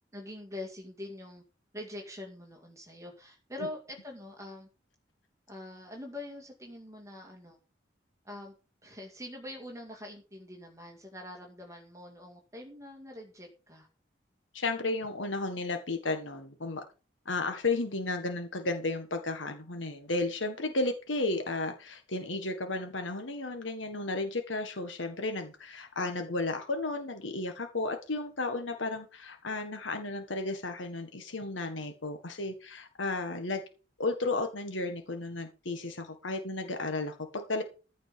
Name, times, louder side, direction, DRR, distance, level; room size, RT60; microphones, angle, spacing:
voice 1, 0.1-1.4 1.7-4.7 5.5-7.6 8.2-8.5 8.8-13.9, left 1 dB, 15° right, 1 dB, 2.2 m, -44 dB
voice 2, 14.5-16.8 17.2-33.6 34.0-37.6, left 2 dB, 85° left, 6 dB, 1.6 m, -33 dB
14.5 x 5.2 x 6.9 m, 0.33 s
head